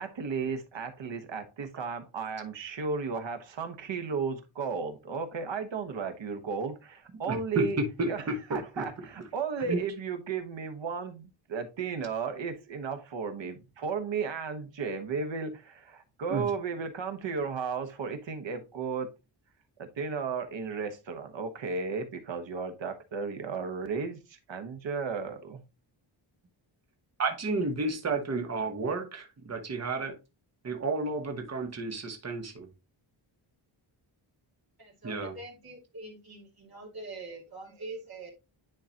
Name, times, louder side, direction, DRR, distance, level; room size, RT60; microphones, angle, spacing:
voice 1, 0.0-7.8 8.1-8.2 8.5-19.1 19.8-25.6, right 5 dB, 65° right, 1.2 m, -34 dB
voice 2, 7.3-8.8 9.6-9.8 16.3-16.4 27.2-30.1 30.6-32.7 35.0-35.4, right 3 dB, 35° right, 1.2 m, -31 dB
voice 3, 34.8-38.3, right 2 dB, 50° right, 2.4 m, -44 dB
10.0 x 3.8 x 2.8 m
wide cardioid pair, 165°, 48 cm